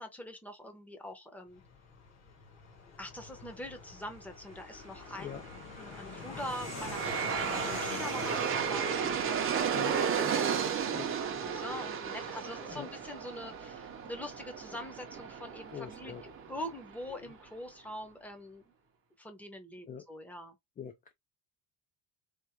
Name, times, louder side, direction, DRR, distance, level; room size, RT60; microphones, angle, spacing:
voice 1, 0.0-1.6 3.0-5.5 5.8-18.6 19.2-20.6, equal, 5° left, 0.8 m, -44 dB
Fixed-wing aircraft airplane, 1.5-17.7, left 5 dB, 45° left, 1.4 m, -47 dB
Aircraft, 5.9-17.0, right 7 dB, 35° right, 0.7 m, -34 dB
voice 2, 15.7-16.2 17.1-17.3 19.9-20.1 20.8-21.1, left 8 dB, 25° left, 0.4 m, -43 dB
3.6 x 2.5 x 4.5 m
cardioid pair, 165°, 38 cm